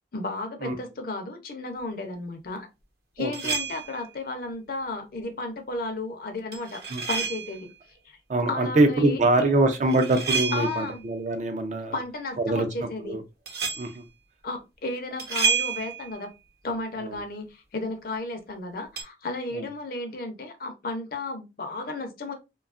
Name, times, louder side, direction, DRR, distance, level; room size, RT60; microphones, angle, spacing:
voice 1, 0.1-2.7 3.2-6.8 7.1-7.7 8.0-8.2 8.5-9.5 10.5-11.0 11.9-13.2 14.4-16.3 16.6-22.3, left 2 dB, 55° left, 0.6 m, -33 dB
voice 2, 3.2-3.5 6.9-7.0 8.3-12.0 12.4-13.2 13.8-14.0 17.0-17.2, right 2 dB, 40° right, 0.4 m, -24 dB
sound 1, 3.3-4.1 6.5-7.7 9.7-11.0 13.5-14.0 15.2-16.2 19.0-19.1, right 5 dB, 60° right, 0.8 m, -29 dB
2.7 x 2.3 x 2.4 m
head